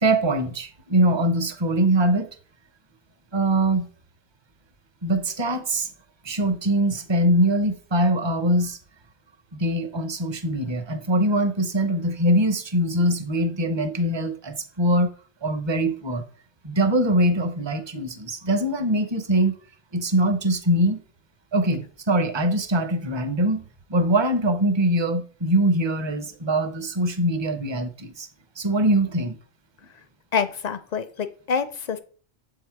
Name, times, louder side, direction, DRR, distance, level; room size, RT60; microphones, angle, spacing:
voice 1, 0.0-2.3 3.3-3.9 5.0-5.9 6.2-8.8 9.6-15.1 15.4-16.2 16.6-19.5 19.9-21.0 21.5-23.6 23.9-28.3 28.6-29.4, right 1 dB, 30° right, 0.6 m, -22 dB
voice 2, 30.3-32.0, left 6 dB, 55° left, 0.5 m, -26 dB
7.0 x 3.8 x 4.6 m
omnidirectional pair, 1.1 m